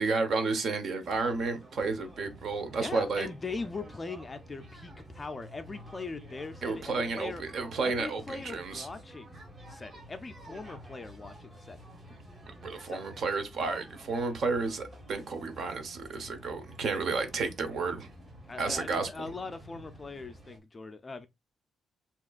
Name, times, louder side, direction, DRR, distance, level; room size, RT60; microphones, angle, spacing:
voice 1, 0.0-3.3 6.6-8.9 12.6-18.1 18.6-19.1, right 4 dB, 50° right, 1.0 m, -31 dB
sound 1, 1.0-20.6, equal, 25° right, 1.6 m, -50 dB
voice 2, 2.8-7.4 7.8-9.4 9.7-11.8 12.8-13.0 18.4-21.3, left 3 dB, 20° left, 0.4 m, -40 dB
7.4 x 2.9 x 2.4 m
cardioid pair, 165°, 0 cm